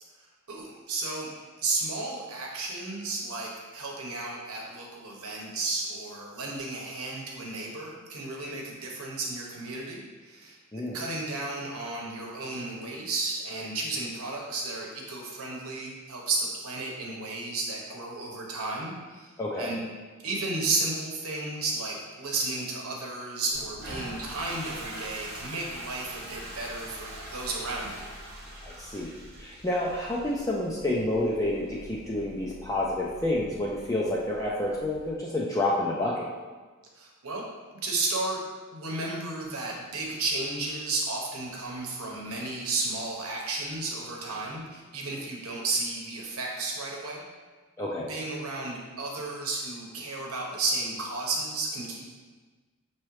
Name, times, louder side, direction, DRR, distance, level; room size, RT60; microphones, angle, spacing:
voice 1, 0.5-1.3 1.6-19.8 20.2-28.1 37.0-37.4 37.8-38.4 38.7-47.2 48.1-52.0, right 3 dB, 80° right, -1 dB, 0.9 m, -33 dB
voice 2, 19.4-19.7 28.6-29.1 29.4-36.3 47.8-48.1, left 1 dB, 15° left, -5 dB, 0.4 m, -29 dB
Toilet flush, 23.5-35.1, right 1 dB, 45° right, 1.0 m, -43 dB
5.7 x 3.0 x 3.1 m, 1.3 s
head